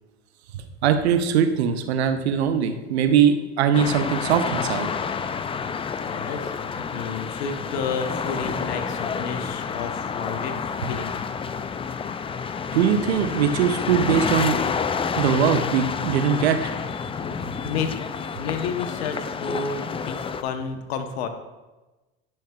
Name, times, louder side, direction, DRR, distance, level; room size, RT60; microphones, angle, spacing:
voice 1, 0.5-4.9 12.7-14.6 15.2-16.6, right 8 dB, 85° right, 8 dB, 0.7 m, -21 dB
sound 1, 3.7-20.4, left 6 dB, 20° left, 0.4 m, -29 dB
voice 2, 6.1-11.1 17.6-18.1 18.4-21.3, left 5 dB, 80° left, 7 dB, 0.9 m, -31 dB
12.0 x 5.6 x 2.3 m, 1.1 s
hypercardioid pair, 80°, 31 cm